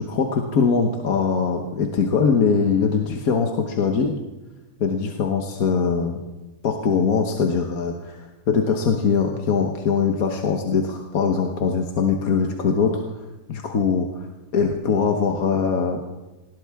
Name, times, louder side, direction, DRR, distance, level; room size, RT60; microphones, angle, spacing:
voice 1, 0.0-4.1 4.8-6.2 6.6-8.2 8.5-13.0 13.5-14.2 14.5-16.0, left 5 dB, 65° left, 3 dB, 1.6 m, -22 dB
19.5 x 17.0 x 3.6 m, 1.1 s
omnidirectional pair, 1.7 m